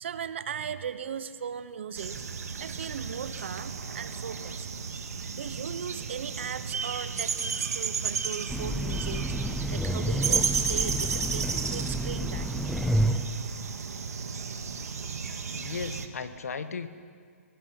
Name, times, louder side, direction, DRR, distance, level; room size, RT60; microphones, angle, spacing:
voice 1, 0.0-2.2 2.6-5.1 5.3-9.3 9.7-12.5, right 8 dB, 50° right, 13 dB, 1.1 m, -38 dB
sound 1, 2.0-16.1, right 5 dB, 85° right, 2.1 m, -33 dB
Train, 8.5-13.4, right 1 dB, ahead, 0.5 m, -29 dB
voice 2, 15.5-16.9, left 5 dB, 75° left, 11 dB, 1.5 m, -36 dB
19.0 x 19.0 x 9.6 m, 2.1 s
hypercardioid pair, 170°, 8 cm